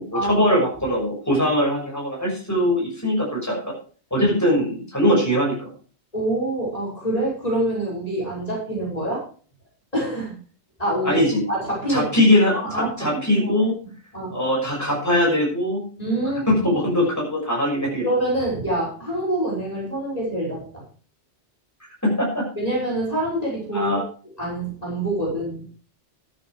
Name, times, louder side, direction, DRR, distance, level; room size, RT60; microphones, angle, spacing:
voice 1, 0.0-3.7 4.1-5.7 11.0-11.4 11.9-13.7 14.3-15.8 16.5-18.1 22.0-22.4 23.7-24.0, left 1 dB, 15° left, -3 dB, 6.6 m, -21 dB
voice 2, 6.1-9.2 9.9-10.3 10.8-11.2 11.5-12.1 12.5-13.5 14.1-14.4 16.0-16.6 18.0-20.6 22.6-24.0 24.4-25.6, right 1 dB, 35° left, -4 dB, 6.1 m, -26 dB
13.0 x 9.6 x 4.9 m, 0.41 s
omnidirectional pair, 1.2 m